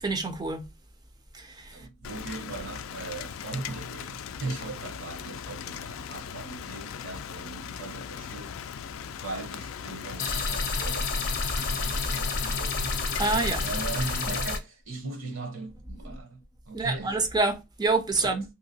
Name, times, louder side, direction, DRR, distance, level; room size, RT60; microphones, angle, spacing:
voice 1, 0.0-0.6 1.3-1.8 13.2-13.6 16.7-18.4, right 3 dB, 20° right, 0.4 m, -27 dB
voice 2, 1.7-13.0 13.6-17.2 18.2-18.4, right 3 dB, 70° right, 0.9 m, -39 dB
Rain, 2.0-14.4, left 7 dB, 75° left, 0.3 m, -39 dB
sound 1, 10.2-14.6, left 3 dB, 45° left, 0.6 m, -29 dB
2.9 x 2.8 x 2.7 m
head